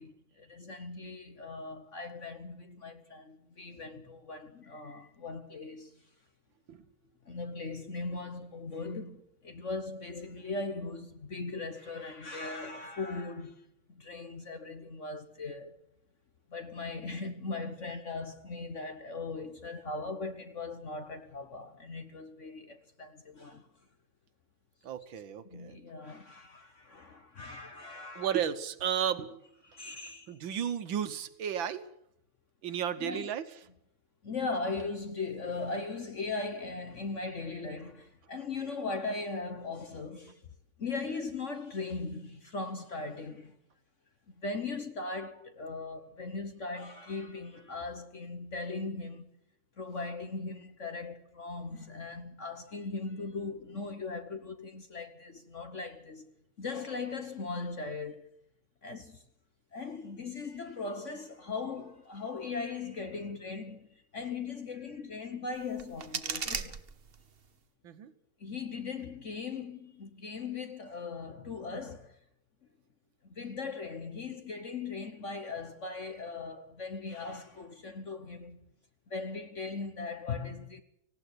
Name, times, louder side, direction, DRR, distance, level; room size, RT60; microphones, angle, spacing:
voice 1, 0.0-6.0 7.2-15.8 16.5-23.7 25.5-28.4 29.6-30.4 33.0-33.3 34.2-40.4 40.8-43.6 44.3-49.3 49.8-56.3 56.6-58.3 58.8-59.2 59.7-66.8 68.4-72.2 73.2-78.6 79.1-80.8, left 3 dB, 45° left, 1.2 m, -39 dB
voice 2, 24.8-25.8 28.2-29.4 30.3-31.9 32.6-33.4 67.8-68.1, right 9 dB, 70° right, 1.8 m, -33 dB
sound 1, 65.5-67.5, right 6 dB, 40° right, 0.9 m, -38 dB
18.5 x 17.0 x 8.1 m
omnidirectional pair, 2.3 m